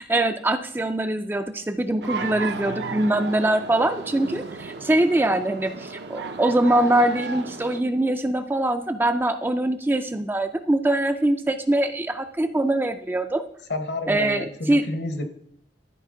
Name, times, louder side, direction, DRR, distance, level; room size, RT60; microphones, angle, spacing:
voice 1, 0.0-13.4 14.1-14.9, right 1 dB, 10° right, 8 dB, 0.3 m, -23 dB
sound 1, 2.0-7.8, right 4 dB, 65° right, 0.6 m, -34 dB
voice 2, 13.7-15.2, left 2 dB, 65° left, 8 dB, 1.0 m, -30 dB
13.0 x 4.4 x 3.7 m, 0.70 s
head